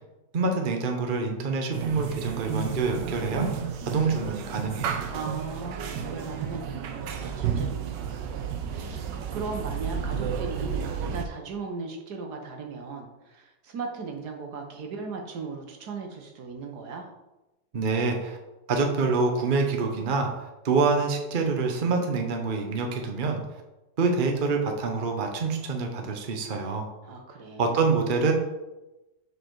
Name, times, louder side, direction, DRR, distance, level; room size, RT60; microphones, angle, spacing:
voice 1, 0.3-3.5 3.9-5.0 17.7-18.4 18.7-20.3 20.6-23.4 24.0-26.9 27.6-28.3, right 4 dB, 40° right, 3 dB, 0.8 m, -26 dB
sound 1, 1.7-11.3, right 7 dB, 85° right, 1.4 m, -32 dB
voice 2, 5.1-9.0 9.3-17.1 27.0-27.8, right 4 dB, 65° right, 3 dB, 1.6 m, -38 dB
6.8 x 5.0 x 4.6 m, 1.0 s
omnidirectional pair, 1.9 m